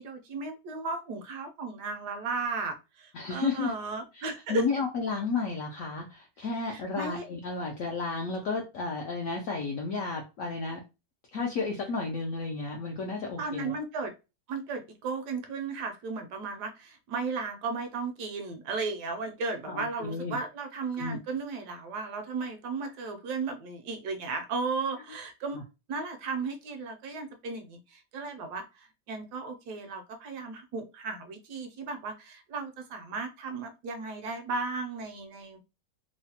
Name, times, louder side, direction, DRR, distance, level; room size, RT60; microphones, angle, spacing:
voice 1, 0.0-4.7 6.6-7.3 13.4-14.1 14.5-25.6 25.9-35.6, right 4 dB, 75° right, 6 dB, 1.1 m, -35 dB
voice 2, 3.1-3.7 4.2-10.8 11.3-13.7 19.6-20.4 21.0-21.2 25.5-25.6, left 4 dB, 75° left, 1 dB, 0.7 m, -32 dB
3.1 x 2.1 x 2.7 m, 0.28 s
omnidirectional pair, 1.9 m